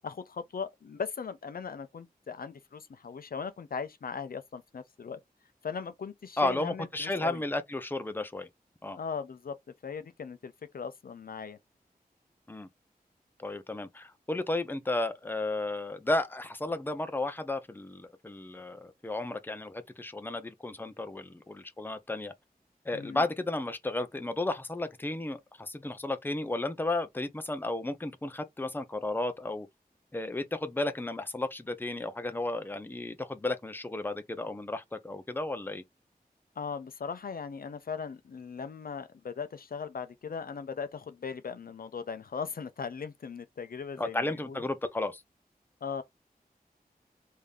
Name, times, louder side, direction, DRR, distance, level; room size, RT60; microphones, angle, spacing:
voice 1, 0.0-5.2 5.6-7.4 8.9-9.6 9.8-11.6 22.9-23.2 36.6-44.6 45.8-46.0, left 6 dB, 70° left, 0.5 m, -38 dB
voice 2, 6.4-8.5 8.8-9.0 12.5-12.7 13.4-22.3 22.8-29.7 30.1-35.8 44.0-45.2, left 2 dB, 15° left, 0.6 m, -33 dB
3.5 x 2.7 x 3.3 m
wide cardioid pair, 80°, 16 cm